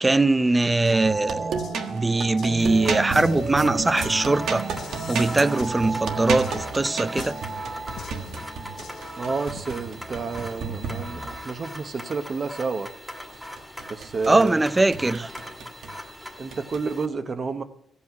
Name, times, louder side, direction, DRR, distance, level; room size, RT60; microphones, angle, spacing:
voice 1, 0.0-1.5 1.9-4.6 5.1-7.4 14.3-15.3, right 2 dB, 20° right, 0.5 m, -21 dB
sound 1, 0.8-9.6, left 7 dB, 65° left, 0.6 m, -44 dB
sound 2, 0.9-11.5 13.3-14.6 14.9-15.9 16.5-16.8, right 5 dB, 85° right, 1.4 m, -31 dB
sound 3, 2.6-17.1, equal, ahead, 1.7 m, -40 dB
voice 2, 9.2-12.9 13.9-14.6 16.4-17.6, right 4 dB, 45° right, 0.9 m, -30 dB
14.5 x 8.5 x 5.9 m
cardioid pair, 110°, 0 cm